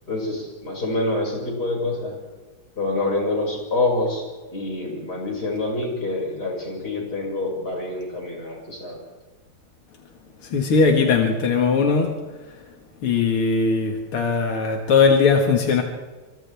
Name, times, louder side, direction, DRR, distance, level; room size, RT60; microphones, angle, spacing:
voice 1, 0.1-2.2 2.8-4.2 4.5-9.0, left 2 dB, 45° left, -1 dB, 6.7 m, -26 dB
voice 2, 10.4-12.1 13.0-15.8, left 5 dB, 85° left, 2 dB, 2.6 m, -19 dB
29.0 x 26.0 x 3.5 m, 1.3 s
omnidirectional pair, 2.3 m